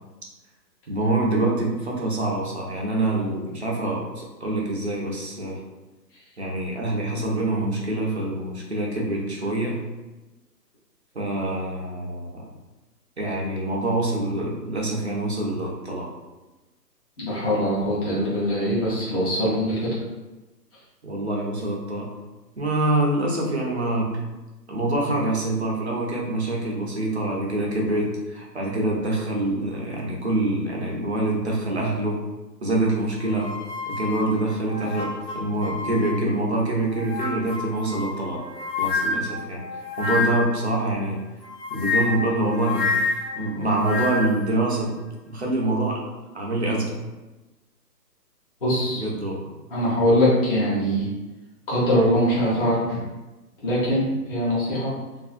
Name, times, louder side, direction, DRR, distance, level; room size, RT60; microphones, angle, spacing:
voice 1, 0.9-5.6 6.4-9.8 11.1-12.5 13.2-16.1 21.0-22.1 22.6-24.2 24.7-32.2 32.6-33.5 33.9-38.5 38.8-39.6 40.0-41.2 41.7-43.0 43.4-45.0 45.3-46.0 46.3-47.0 48.9-49.3, right 2 dB, 45° right, -2 dB, 0.4 m, -25 dB
voice 2, 17.2-19.9 48.6-49.0 49.7-51.1 51.7-53.0 53.6-54.9, equal, 35° left, -8 dB, 0.8 m, -22 dB
sound 1, 33.2-36.5 36.9-40.6 41.4-44.5, left 4 dB, 80° left, 0.9 m, -29 dB
2.5 x 2.5 x 2.3 m, 1.1 s
figure-of-eight pair, 150°, 50 cm